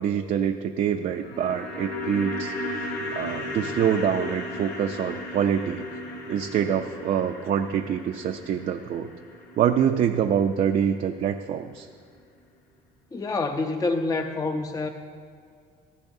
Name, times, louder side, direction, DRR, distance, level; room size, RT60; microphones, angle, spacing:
voice 1, 0.0-5.9 6.3-9.1 9.6-11.9, right 8 dB, 55° right, 5 dB, 0.5 m, -25 dB
sound 1, 1.0-11.2 11.5-11.6, left 1 dB, 80° left, 1.7 m, -36 dB
voice 2, 13.1-14.9, left 3 dB, 20° left, 5 dB, 0.6 m, -27 dB
14.5 x 14.0 x 2.7 m, 2.2 s
cardioid pair, 110°, 17 cm